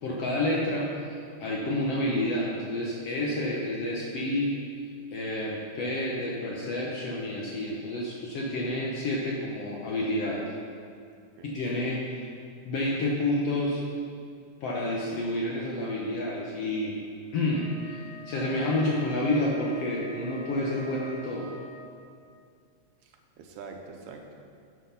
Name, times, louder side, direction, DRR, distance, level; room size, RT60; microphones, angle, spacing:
voice 1, 0.0-1.1 1.4-4.6 5.1-10.5 11.4-12.3 12.6-13.8 14.6-17.0 17.3-21.5, left 1 dB, 65° left, -3 dB, 1.7 m, -29 dB
Wind instrument woodwind instrument, 17.5-22.1, equal, 50° right, 1.5 m, -46 dB
voice 2, 23.0-24.3, right 4 dB, 75° right, 3 dB, 2.1 m, -45 dB
10.5 x 5.8 x 5.7 m, 2.3 s
omnidirectional pair, 3.6 m